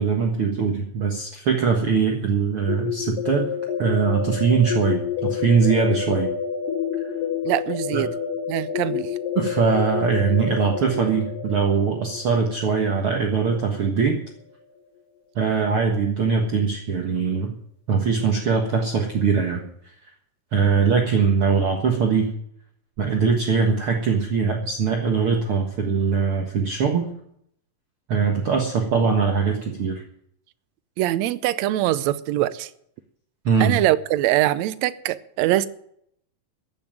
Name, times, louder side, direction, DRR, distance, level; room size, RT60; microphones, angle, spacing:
voice 1, 0.0-3.5 3.8-6.3 7.9-8.0 9.4-14.2 15.4-17.5 17.9-19.6 20.5-22.3 23.0-27.1 28.1-30.0 33.5-33.7, right 5 dB, 50° right, 2.0 m, -21 dB
sound 1, 2.7-14.4, left 7 dB, 80° left, 2.7 m, -29 dB
voice 2, 7.4-8.1 8.5-9.1 31.0-32.7 33.6-35.7, right 14 dB, 80° right, 1.6 m, -23 dB
15.0 x 7.5 x 9.1 m
omnidirectional pair, 3.8 m